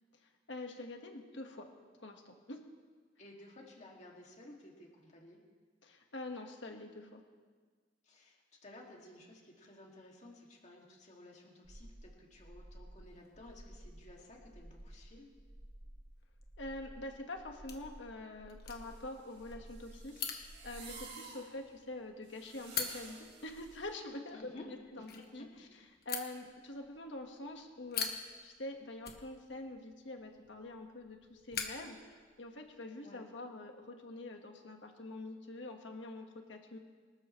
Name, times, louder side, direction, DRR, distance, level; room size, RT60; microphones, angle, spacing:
voice 1, 0.2-1.7 2.0-2.6 5.8-7.2 16.6-25.7 26.1-36.8, left 2 dB, 70° left, 3 dB, 1.7 m, -46 dB
voice 2, 3.2-5.4 8.0-15.3 24.3-24.7 25.0-25.1 33.0-33.3, left 1 dB, 40° left, -1 dB, 2.4 m, -55 dB
sound 1, 11.6-21.1, right 1 dB, 20° right, 0.6 m, -54 dB
sound 2, 13.1-32.7, left 6 dB, 55° left, 1.4 m, -47 dB
sound 3, 18.8-23.9, right 4 dB, 90° right, 5.3 m, -53 dB
24.5 x 13.0 x 3.3 m, 1.5 s
head